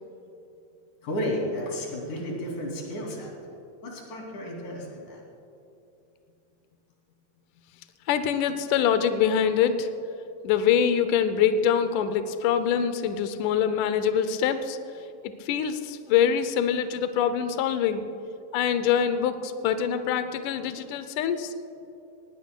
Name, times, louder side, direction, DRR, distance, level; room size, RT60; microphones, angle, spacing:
voice 1, 1.0-3.3 3.8-5.2, equal, 55° left, -2 dB, 3.9 m, -32 dB
voice 2, 8.1-9.9 10.4-14.8 15.2-18.0 18.5-21.5, left 8 dB, 90° left, 10 dB, 1.8 m, -24 dB
19.5 x 18.5 x 2.2 m, 2.8 s
omnidirectional pair, 4.4 m